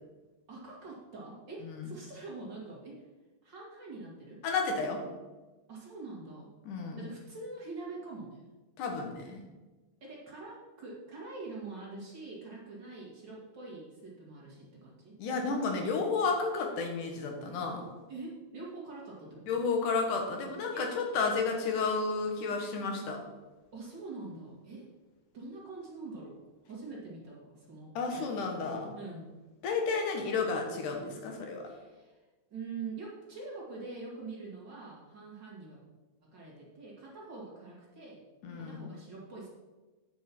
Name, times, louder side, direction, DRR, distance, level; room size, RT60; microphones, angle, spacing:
voice 1, 0.5-3.1 3.4-4.4 5.7-6.5 6.8-8.5 10.0-15.1 18.1-19.6 20.7-20.9 23.7-24.9 25.3-28.5 29.0-29.3 31.7-32.2 32.5-35.8 36.2-38.2 38.5-39.5, right 3 dB, 40° right, -4 dB, 2.3 m, -45 dB
voice 2, 4.4-5.0 6.6-7.0 8.8-9.4 15.2-17.9 19.5-23.2 28.0-28.9 29.6-31.6 38.4-38.9, left 4 dB, 85° left, 3 dB, 2.9 m, -32 dB
9.5 x 5.4 x 6.0 m, 1.2 s
omnidirectional pair, 3.5 m